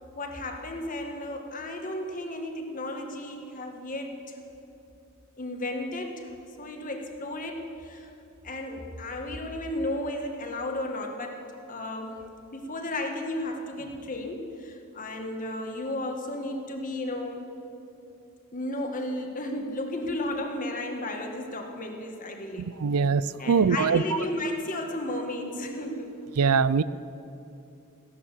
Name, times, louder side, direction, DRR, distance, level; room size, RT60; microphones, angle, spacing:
voice 1, 0.1-4.4 5.4-8.1 8.4-17.5 18.5-22.7 23.4-26.1, left 1 dB, 40° left, 3 dB, 1.6 m, -34 dB
voice 2, 22.6-24.0 26.4-26.8, right 5 dB, 90° right, 17 dB, 0.5 m, -23 dB
16.0 x 11.0 x 7.3 m, 2.7 s
head